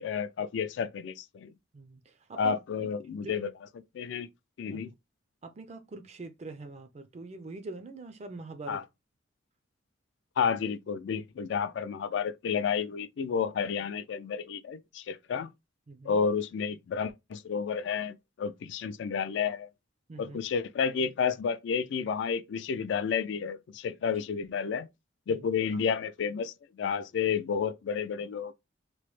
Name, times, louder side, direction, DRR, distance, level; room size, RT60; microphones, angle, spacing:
voice 1, 0.0-1.5 2.4-3.5 3.9-4.3 4.6-4.9 8.7-8.8 10.4-15.5 16.0-19.7 20.2-24.9 25.3-28.5, left 6 dB, 70° left, 0.3 m, -31 dB
voice 2, 5.4-8.8 15.9-16.2 20.1-20.4 25.3-25.4, right 3 dB, 35° right, 0.4 m, -43 dB
3.0 x 2.1 x 3.0 m
head